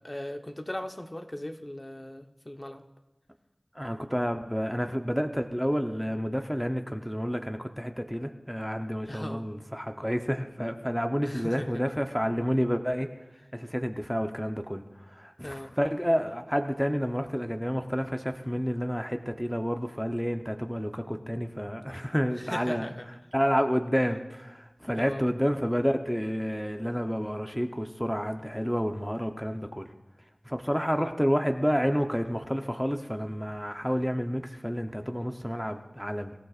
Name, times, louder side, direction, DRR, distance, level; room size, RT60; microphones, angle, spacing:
voice 1, 0.0-2.8 9.1-9.5 11.2-11.8 15.4-15.7 22.4-23.1 25.0-25.2 31.0-31.1, left 1 dB, 30° left, 5 dB, 0.9 m, -38 dB
voice 2, 3.8-13.1 13.5-14.8 15.1-22.9 23.3-29.9 30.5-36.3, equal, ahead, 5 dB, 0.8 m, -29 dB
25.0 x 14.5 x 2.5 m, 1.0 s
wide cardioid pair, 45°, 0 cm